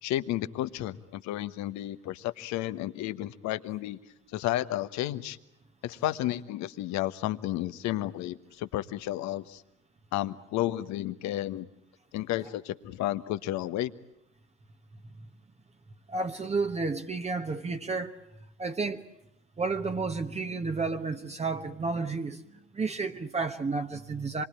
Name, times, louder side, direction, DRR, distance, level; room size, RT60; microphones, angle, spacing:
voice 1, 0.0-4.0 4.3-5.4 5.8-9.6 10.1-11.7 12.1-13.9, left 14 dB, 50° left, 13 dB, 1.2 m, -32 dB
voice 2, 16.1-18.2 18.6-19.0 19.6-24.4, right 4 dB, 15° right, 6 dB, 1.3 m, -31 dB
27.0 x 22.0 x 8.8 m, 0.81 s
figure-of-eight pair, 70°, 37 cm